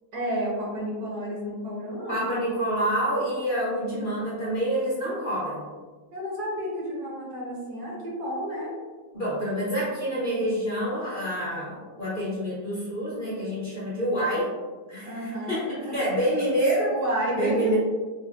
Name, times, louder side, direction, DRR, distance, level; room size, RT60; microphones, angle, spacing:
voice 1, 0.1-2.2 6.1-8.8 15.0-16.0 16.9-17.7, equal, 65° right, -3 dB, 1.2 m, -31 dB
voice 2, 2.1-5.6 9.1-14.5 14.9-16.9 17.3-17.7, equal, 35° left, -10 dB, 1.0 m, -27 dB
5.1 x 2.0 x 2.3 m, 1.4 s
omnidirectional pair, 2.0 m